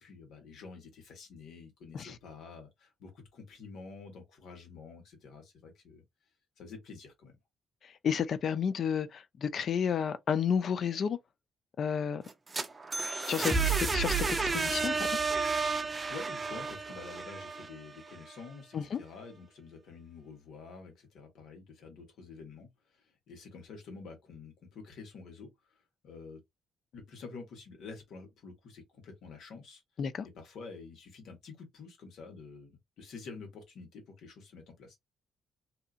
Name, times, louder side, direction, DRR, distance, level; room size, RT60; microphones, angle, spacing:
voice 1, 0.0-6.0 6.6-7.3 16.1-25.5 26.0-26.4 26.9-29.8 30.3-35.0, left 4 dB, 75° left, 1.4 m, -48 dB
voice 2, 8.0-11.2 11.8-12.2 13.3-15.1 18.7-19.0 30.0-30.3, left 7 dB, 55° left, 0.4 m, -31 dB
sound 1, 12.3-18.2, right 4 dB, 25° right, 0.5 m, -31 dB
2.8 x 2.4 x 2.4 m
cardioid pair, 90°, 0 cm